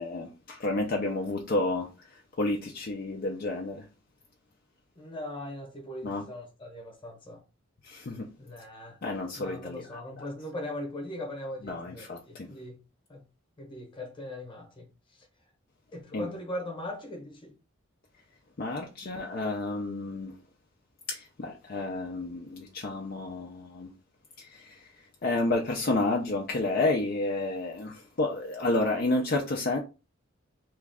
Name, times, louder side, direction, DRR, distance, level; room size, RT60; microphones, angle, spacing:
voice 1, 0.0-3.9 6.0-6.3 7.8-8.3 9.0-10.3 11.6-12.5 16.1-16.3 18.6-20.4 21.1-23.9 24.4-29.8, left 2 dB, 50° left, 0.5 m, -31 dB
voice 2, 5.0-7.4 8.4-9.0 9.4-12.8 13.1-13.2 13.6-15.2 15.9-17.5 19.0-19.1, left 1 dB, 25° left, 1.0 m, -40 dB
3.1 x 2.4 x 3.4 m
head